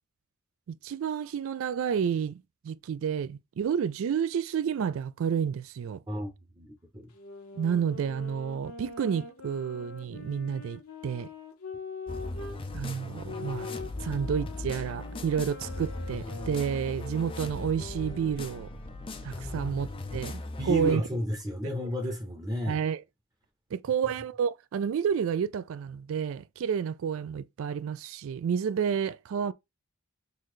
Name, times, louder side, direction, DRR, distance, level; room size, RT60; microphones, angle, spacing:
voice 1, 0.7-6.0 7.6-11.3 12.7-13.7 14.0-18.7 19.2-21.0 22.7-23.0 23.7-29.5, right 7 dB, 65° right, 0.3 m, -30 dB
voice 2, 6.6-7.1 20.1-20.2 20.6-22.8, equal, 15° right, 0.8 m, -32 dB
sound 1, 7.1-12.6 13.2-18.4, left 4 dB, 75° left, 0.9 m, -43 dB
sound 2, 12.1-20.9, left 2 dB, 25° left, 0.4 m, -38 dB
3.9 x 2.7 x 3.1 m
head